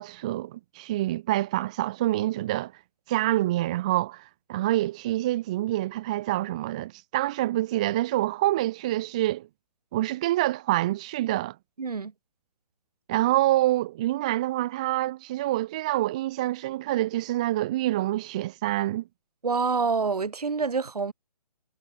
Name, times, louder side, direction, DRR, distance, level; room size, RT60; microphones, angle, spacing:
voice 1, 0.0-2.7 3.1-9.5 9.9-11.6 13.1-19.0, right 15 dB, 10° right, 0.3 m, -26 dB
voice 2, 11.8-12.1 19.4-21.1, right 5 dB, 75° right, 3.8 m, -27 dB
hypercardioid pair, 150°, 20 cm